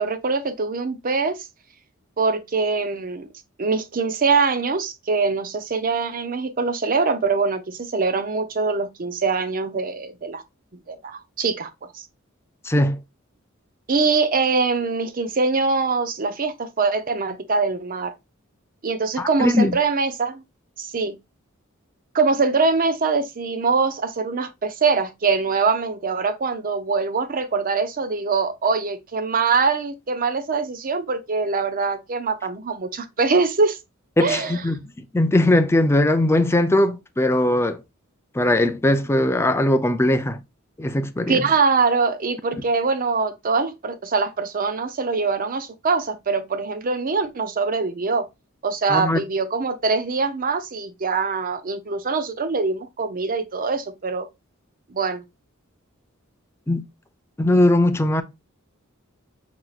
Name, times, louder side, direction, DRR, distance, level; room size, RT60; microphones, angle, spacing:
voice 1, 0.0-1.5 2.2-3.3 3.6-10.4 10.9-11.7 11.9-12.0 13.9-18.1 18.8-20.4 20.8-21.2 22.1-33.8 34.2-34.6 41.3-48.3 48.6-54.3 54.9-55.2, right 4 dB, 45° right, 0.6 m, -23 dB
voice 2, 12.6-13.0 19.2-19.8 34.2-37.8 38.3-40.4 40.8-41.4 48.9-49.2 56.7-56.8 57.4-58.2, left 1 dB, 10° left, 0.4 m, -20 dB
4.5 x 4.0 x 2.4 m
head